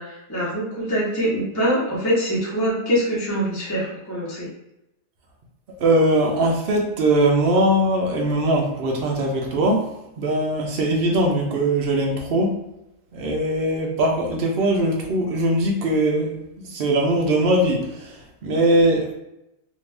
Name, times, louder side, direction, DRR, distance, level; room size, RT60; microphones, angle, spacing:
voice 1, 0.0-4.5, equal, 15° left, -7 dB, 0.7 m, -24 dB
voice 2, 5.8-12.6 13.1-19.1, right 1 dB, 80° right, 0 dB, 0.5 m, -21 dB
2.7 x 2.6 x 3.3 m, 0.87 s
omnidirectional pair, 1.8 m